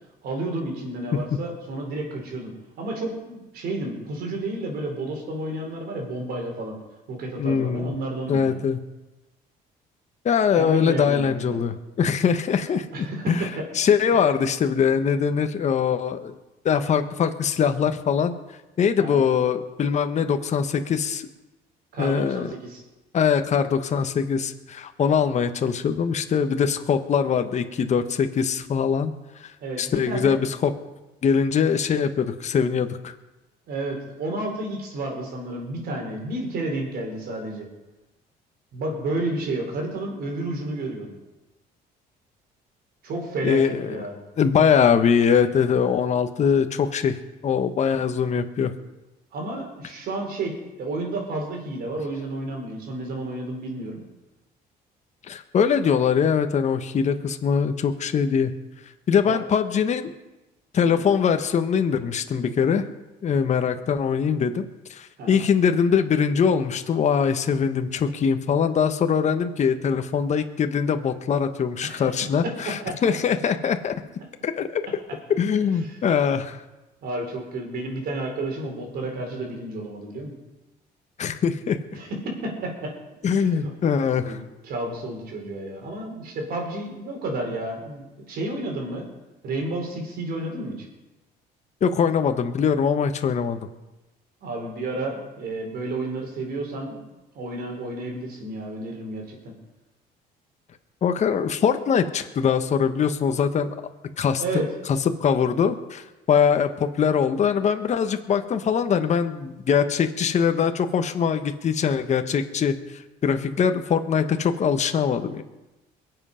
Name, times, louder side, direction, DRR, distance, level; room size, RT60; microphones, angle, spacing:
voice 1, 0.2-6.8 7.1-8.6 10.6-11.6 12.9-13.7 19.0-19.2 21.9-22.8 29.6-30.4 33.7-37.7 38.7-41.2 43.0-44.1 49.3-54.0 59.3-59.4 65.2-65.4 71.8-72.1 72.8-72.9 75.8-76.0 77.0-80.3 81.9-82.9 83.2-83.7 84.2-89.1 89.4-90.8 94.4-97.0 97.3-99.5 104.4-104.6, right 2 dB, 65° right, 2 dB, 4.5 m, -31 dB
voice 2, 7.4-7.9 8.3-8.8 10.2-16.3 16.6-18.3 18.8-21.3 22.0-22.5 23.1-29.1 29.4-29.5 29.8-30.7 31.2-33.0 43.4-44.0 44.4-47.2 47.4-48.7 55.3-58.5 59.1-60.1 60.7-62.8 63.2-73.9 74.4-74.8 75.4-76.6 81.2-81.8 83.2-84.4 91.8-93.6 101.0-103.7 104.2-104.4 105.0-115.4, left 7 dB, 45° left, 8 dB, 1.1 m, -22 dB
22.5 x 7.9 x 5.7 m, 1.0 s
cardioid pair, 110°, 17 cm